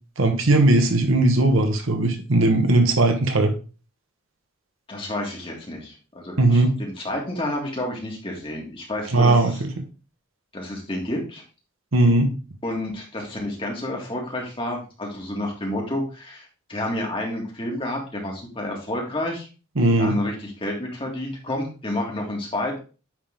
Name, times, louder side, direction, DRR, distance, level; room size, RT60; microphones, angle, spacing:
voice 1, 0.2-3.5 6.4-6.7 9.1-9.8 11.9-12.3 19.8-20.2, right 2 dB, 75° right, 5 dB, 1.2 m, -18 dB
voice 2, 4.9-9.6 10.5-11.4 12.6-19.5 20.0-22.8, left 1 dB, 25° left, -1 dB, 1.9 m, -30 dB
9.5 x 3.7 x 3.7 m, 0.34 s
head